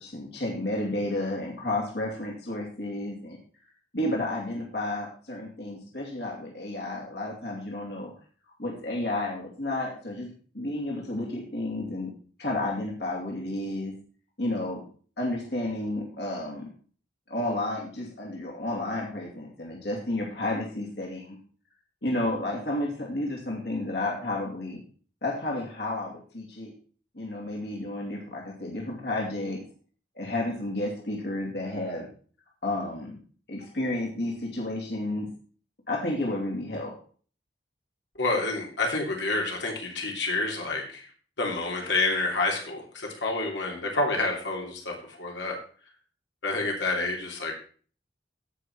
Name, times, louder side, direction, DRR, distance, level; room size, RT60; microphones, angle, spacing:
voice 1, 0.0-3.4 3.9-8.1 8.6-10.3 10.5-12.1 12.4-13.9 14.4-14.8 15.2-16.7 17.3-21.4 22.0-24.8 25.2-26.7 27.1-29.6 30.1-32.1 32.6-33.2 33.5-35.3 35.9-36.9, left 1 dB, 65° left, -1 dB, 2.7 m, -31 dB
voice 2, 38.2-41.1 41.4-45.6 46.4-47.5, left 2 dB, 80° left, 0 dB, 3.0 m, -28 dB
16.0 x 5.8 x 4.7 m, 0.42 s
head